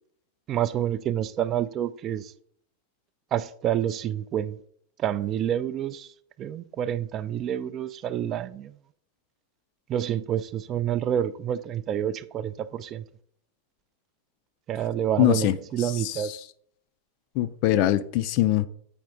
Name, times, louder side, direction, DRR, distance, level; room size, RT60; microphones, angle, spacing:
voice 1, 0.5-2.3 3.3-4.6 5.0-6.1 6.4-8.7 9.9-13.0 14.7-16.3, right 10 dB, 30° right, 0.3 m, -28 dB
voice 2, 15.2-16.4 17.4-18.7, left 13 dB, 45° left, 0.4 m, -23 dB
8.6 x 4.8 x 3.6 m
figure-of-eight pair, 90°, 0 cm